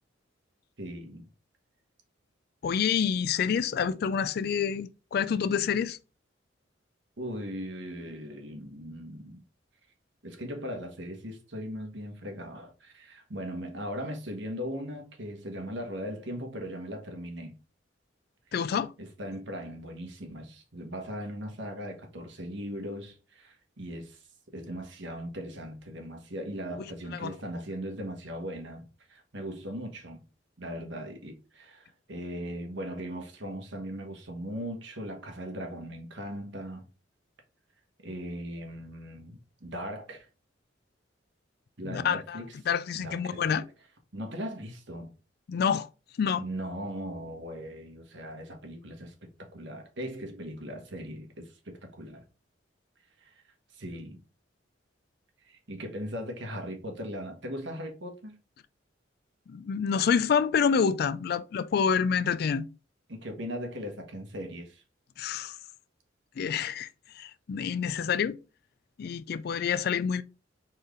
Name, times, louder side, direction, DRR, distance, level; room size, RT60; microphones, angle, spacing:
voice 1, 0.8-1.3 7.2-9.4 10.2-17.5 19.0-24.2 24.5-30.2 30.6-36.8 38.0-40.3 41.8-42.5 42.9-43.5 44.1-45.1 46.4-52.2 53.2-53.4 53.7-54.2 55.5-58.3 63.1-64.8, equal, 70° right, 1.3 m, -39 dB
voice 2, 2.6-6.0 18.5-18.9 27.1-27.4 41.8-42.4 42.7-43.6 45.5-45.9 46.2-46.4 59.5-62.7 65.2-65.6 66.4-66.9 67.1-68.4 69.0-70.2, left 7 dB, 55° left, 0.3 m, -27 dB
4.4 x 3.3 x 3.6 m
head